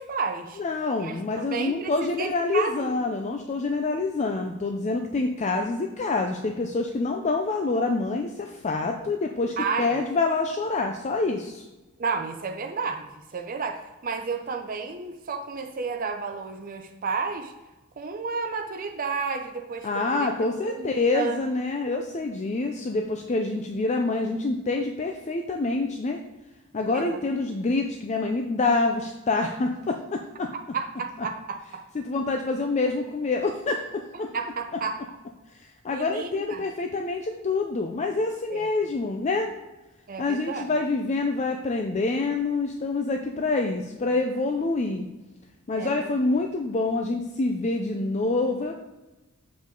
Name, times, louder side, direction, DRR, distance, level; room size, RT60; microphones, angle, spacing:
voice 1, 0.0-0.6 1.0-3.0 9.6-10.0 12.0-17.5 18.0-20.3 20.6-21.4 26.9-27.2 30.7-31.8 34.3-35.0 35.9-36.6 38.5-38.7 40.1-40.7 45.8-46.2, right 5 dB, 40° right, 4 dB, 0.6 m, -32 dB
voice 2, 0.6-11.7 19.8-26.2 26.7-30.5 31.9-34.3 35.6-39.5 40.2-45.1 45.7-48.7, left 3 dB, 35° left, 4 dB, 0.4 m, -26 dB
7.0 x 5.2 x 3.8 m, 1.1 s
head